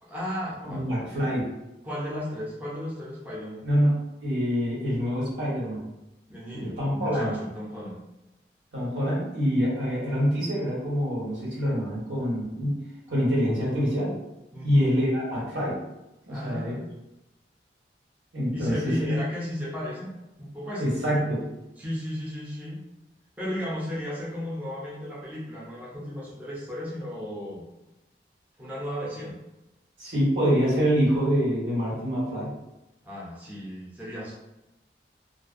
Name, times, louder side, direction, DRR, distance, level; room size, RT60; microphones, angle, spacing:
voice 1, 0.0-0.9 1.8-3.7 6.3-8.0 14.5-14.9 16.3-16.9 18.5-20.1 20.4-20.8 21.8-22.8 23.4-27.6 28.6-29.4 33.0-34.3, equal, 10° right, -7 dB, 0.5 m, -34 dB
voice 2, 0.7-1.5 3.6-5.9 6.5-7.3 8.7-12.7 13.1-14.1 14.6-15.8 16.2-16.8 18.3-18.7 20.8-21.4 30.0-32.5, equal, 85° right, -7 dB, 1.4 m, -25 dB
2.5 x 2.2 x 2.4 m, 0.94 s
head